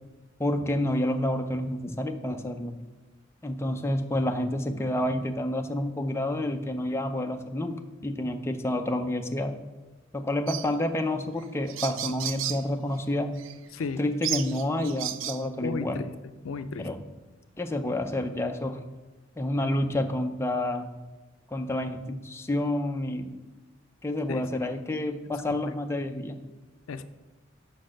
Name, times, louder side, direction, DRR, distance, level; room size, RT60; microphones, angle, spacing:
voice 1, 0.4-2.8 3.4-9.6 10.1-13.4 14.0-16.0 16.8-17.0 17.6-18.8 19.4-20.9 21.5-23.3 24.0-26.4, left 1 dB, 15° left, 5 dB, 0.5 m, -29 dB
sound 1, 10.5-10.7 11.4-11.5 11.7-12.6 13.4-13.5 14.2-15.4, right 11 dB, 70° right, 0.4 m, -33 dB
voice 2, 13.7-14.0 15.6-16.1 16.4-16.9 24.3-24.7 25.2-25.7 26.9-27.0, left 4 dB, 80° left, 11 dB, 0.4 m, -35 dB
6.4 x 4.8 x 6.3 m, 1.2 s
head